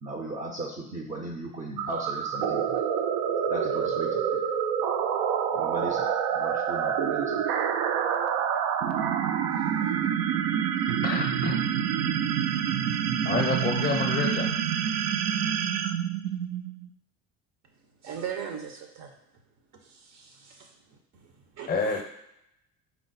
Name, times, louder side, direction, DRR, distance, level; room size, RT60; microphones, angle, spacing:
voice 1, 0.0-2.8 3.5-4.4 5.5-7.4, right 2 dB, 25° right, 1 dB, 0.5 m, -37 dB
sound 1, 1.8-16.9, right 8 dB, 85° right, 0.5 m, -27 dB
voice 2, 11.0-11.6 13.2-14.5 21.7-22.0, left 4 dB, 30° left, 2 dB, 0.6 m, -28 dB
voice 3, 18.0-19.1 19.8-22.0, right 8 dB, 60° right, 3 dB, 0.8 m, -40 dB
4.4 x 2.0 x 3.9 m, 0.77 s
cardioid pair, 120°, 32 cm